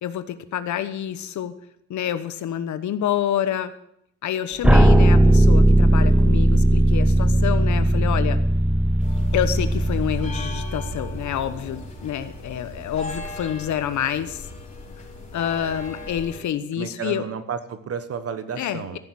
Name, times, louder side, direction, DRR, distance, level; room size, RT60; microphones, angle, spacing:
voice 1, 0.0-1.5 1.9-3.7 4.2-8.4 9.3-14.5 15.3-17.2 18.6-19.0, left 10 dB, 70° left, 11 dB, 1.1 m, -27 dB
sound 1, 4.6-11.6, right 1 dB, 5° right, 0.7 m, -17 dB
sound 2, 9.0-16.4, left 2 dB, 25° left, 4.2 m, -37 dB
voice 2, 16.7-19.0, right 7 dB, 50° right, 11 dB, 1.4 m, -32 dB
14.5 x 7.2 x 7.7 m, 0.76 s
cardioid pair, 90°, 30 cm